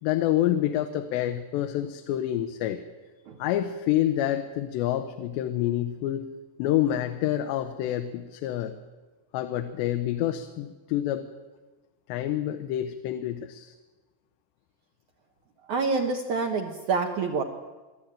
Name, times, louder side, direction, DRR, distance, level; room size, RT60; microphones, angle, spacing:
voice 1, 0.0-2.8 3.4-6.3 6.6-8.8 9.3-11.3 12.1-13.7, left 12 dB, 85° left, 7 dB, 3.1 m, -27 dB
voice 2, 15.7-17.4, right 4 dB, 70° right, 3 dB, 1.9 m, -27 dB
24.0 x 13.0 x 8.9 m, 1.2 s
omnidirectional pair, 4.9 m